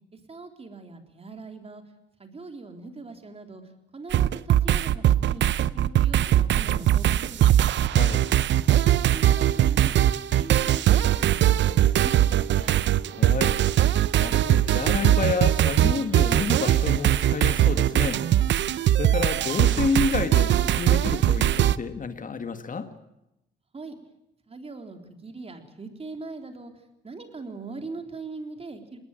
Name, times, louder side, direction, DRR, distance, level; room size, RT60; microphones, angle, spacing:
voice 1, 0.1-1.8 2.2-3.6 3.9-5.4 5.7-7.7 8.9-9.9 10.3-12.8 23.7-23.9 24.5-26.7 27.0-29.0, right 3 dB, 30° right, 6 dB, 3.7 m, -41 dB
sound 1, 4.1-21.8, right 12 dB, 65° right, 0.7 m, -21 dB
voice 2, 7.9-8.3 13.1-13.6 14.2-18.6 18.9-22.9, left 5 dB, 40° left, 9 dB, 1.9 m, -29 dB
20.5 x 19.5 x 8.9 m, 0.86 s
cardioid pair, 90°, 20 cm